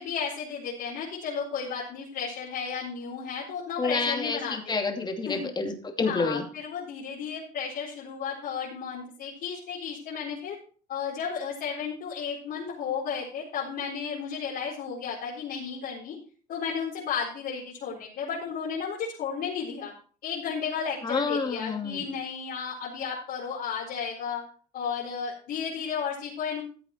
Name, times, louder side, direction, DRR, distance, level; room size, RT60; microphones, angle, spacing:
voice 1, 0.0-4.7 5.2-5.5 6.0-10.6 10.9-16.2 16.5-19.9 20.2-24.4 24.7-26.6, left 6 dB, 70° left, -6 dB, 4.2 m, -33 dB
voice 2, 3.8-6.4 21.0-22.0, left 4 dB, 25° left, 3 dB, 2.7 m, -29 dB
15.0 x 7.8 x 4.5 m, 0.42 s
cardioid pair, 110°, 17 cm